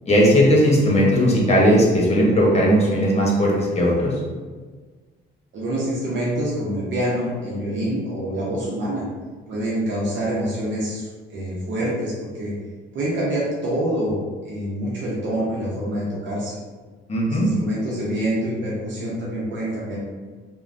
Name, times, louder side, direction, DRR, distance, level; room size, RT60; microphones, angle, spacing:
voice 1, 0.1-4.1 17.1-17.5, equal, 35° left, -3 dB, 0.9 m, -17 dB
voice 2, 5.5-9.0 9.5-12.5 12.9-14.2 14.4-16.6 17.2-20.0, right 1 dB, 70° right, -6 dB, 0.7 m, -26 dB
3.1 x 2.2 x 2.5 m, 1.4 s
cardioid pair, 90°, 20 cm